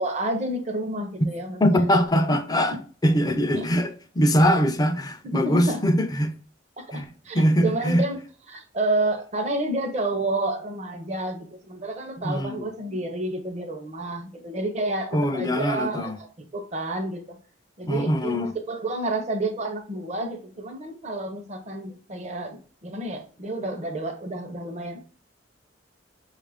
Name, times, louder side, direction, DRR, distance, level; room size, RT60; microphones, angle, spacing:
voice 1, 0.0-1.9 3.6-3.7 5.2-5.8 6.8-8.2 8.5-16.3 16.5-17.4 17.8-25.0, right 2 dB, 40° right, 0.7 m, -30 dB
voice 2, 1.6-2.7 3.0-6.3 6.9-7.0 7.3-8.0 12.2-12.6 15.1-16.1 17.9-18.5, equal, 20° left, 0.4 m, -22 dB
5.9 x 2.4 x 3.4 m
head